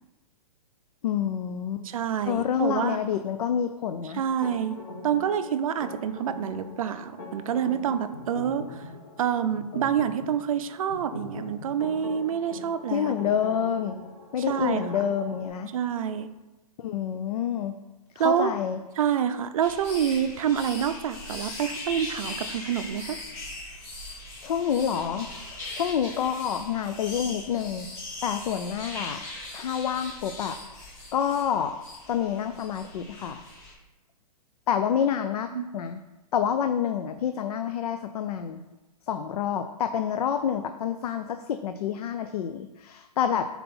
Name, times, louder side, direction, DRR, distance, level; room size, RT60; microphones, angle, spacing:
voice 1, 1.0-1.8 2.2-4.2 12.9-13.9 14.3-15.7 16.8-17.8 18.2-18.8 24.4-25.3 25.7-27.9 28.2-29.3 29.5-30.6 31.1-31.7 32.1-33.4 34.7-35.5 35.7-36.0 36.3-38.6 39.1-43.4, left 8 dB, 70° left, 8 dB, 0.4 m, -28 dB
voice 2, 1.8-3.0 4.1-4.8 5.0-8.8 9.2-13.1 14.5-14.9 15.7-16.3 18.2-18.5 19.0-23.2 35.5-35.7, right 8 dB, 60° right, 11 dB, 0.5 m, -27 dB
sound 1, 4.4-15.5, left 2 dB, 35° left, 1.6 m, -42 dB
sound 2, 19.6-33.7, left 2 dB, 15° left, 1.8 m, -40 dB
4.3 x 4.1 x 5.4 m, 1.1 s
hypercardioid pair, 165°, 20 cm